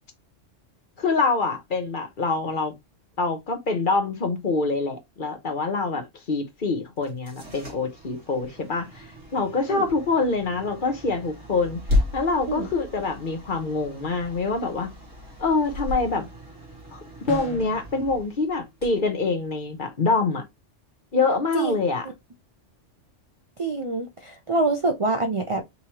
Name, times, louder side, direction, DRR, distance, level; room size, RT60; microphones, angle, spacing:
voice 1, 1.0-2.7 3.2-9.0 9.3-11.8 12.1-14.9 15.4-16.3 16.9-20.4 21.1-22.1, left 3 dB, 45° left, 0.9 m, -25 dB
sound 1, 7.0-19.9, left 2 dB, 90° right, 2.6 m, -34 dB
sound 2, 17.3-17.8, left 1 dB, 80° left, 1.6 m, -34 dB
voice 2, 23.6-25.6, right 3 dB, 45° right, 0.4 m, -25 dB
5.4 x 3.0 x 2.9 m
omnidirectional pair, 1.3 m